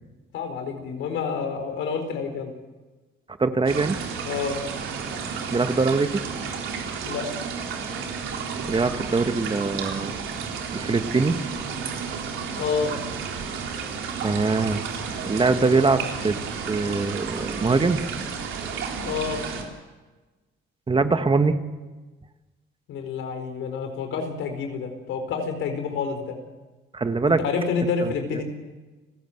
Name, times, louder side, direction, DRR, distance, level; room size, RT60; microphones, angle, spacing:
voice 1, 0.3-2.5 4.2-4.6 7.0-7.3 10.9-11.0 12.6-12.9 19.0-19.4 22.9-26.3 27.2-28.4, left 5 dB, 85° left, 6 dB, 4.6 m, -28 dB
voice 2, 3.4-4.0 5.5-6.2 8.7-10.2 10.7-11.4 14.2-14.8 15.3-16.4 16.7-18.0 20.9-21.6 26.9-27.4 28.0-28.1, right 4 dB, 25° right, 8 dB, 1.6 m, -22 dB
sound 1, 3.6-19.6, right 6 dB, 80° right, 4.0 m, -32 dB
29.5 x 16.0 x 8.0 m, 1.3 s
cardioid pair, 90°, 20 cm